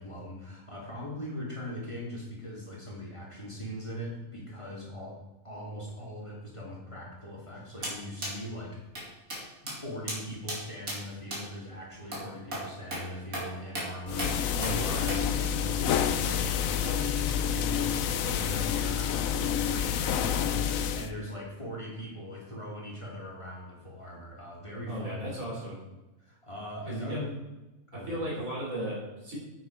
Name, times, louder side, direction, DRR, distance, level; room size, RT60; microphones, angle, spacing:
voice 1, 0.0-5.2 5.4-8.8 9.3-25.3 26.2-27.4 27.9-28.2, equal, 20° left, -4 dB, 2.7 m, -40 dB
sound 1, 7.8-8.0 8.2-8.3 8.9-9.0 9.3-9.4 9.7-9.8 10.1-10.2 10.5-10.6 10.9-11.0 11.3-11.4 12.1-12.2 12.5-12.6 12.9-13.0 13.3-13.5 13.7-13.9 14.2-14.3 14.6-14.8 15.1-15.2, right 1 dB, 90° right, 3.3 m, -34 dB
sound 2, 14.1-21.1, left 8 dB, 80° left, 1.1 m, -28 dB
voice 2, 14.5-15.0 24.8-25.8 26.9-27.2 27.9-29.4, right 1 dB, 75° right, -4 dB, 4.5 m, -35 dB
9.8 x 8.7 x 4.6 m, 1.1 s
omnidirectional pair, 1.4 m